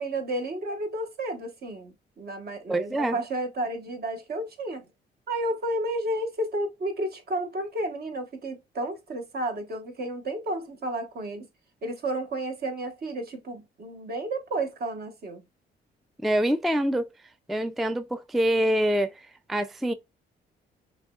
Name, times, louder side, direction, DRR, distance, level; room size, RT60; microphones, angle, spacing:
voice 1, 0.0-4.8 5.3-11.5 11.8-15.4, right 1 dB, 50° right, 1.3 m, -32 dB
voice 2, 2.7-3.2 16.2-17.1 17.5-19.9, equal, ahead, 0.3 m, -25 dB
6.1 x 3.2 x 2.3 m
cardioid pair, 90°, 20 cm